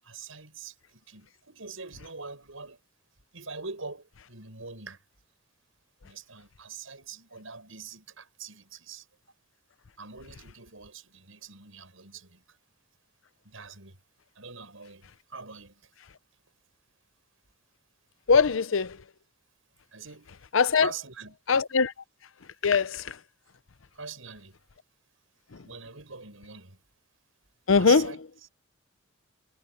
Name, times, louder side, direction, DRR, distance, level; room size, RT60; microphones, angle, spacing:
voice 1, 0.0-2.8 3.3-5.0 6.0-9.1 10.0-12.6 13.4-14.0 14.3-15.8 19.9-20.4 20.8-21.4 23.9-24.6 25.6-26.8 27.7-28.5, right 5 dB, 85° right, 6.7 m, -43 dB
voice 2, 18.3-18.9 20.5-20.9 21.5-21.9 22.6-23.0 27.7-28.0, left 5 dB, 75° left, 0.7 m, -21 dB
head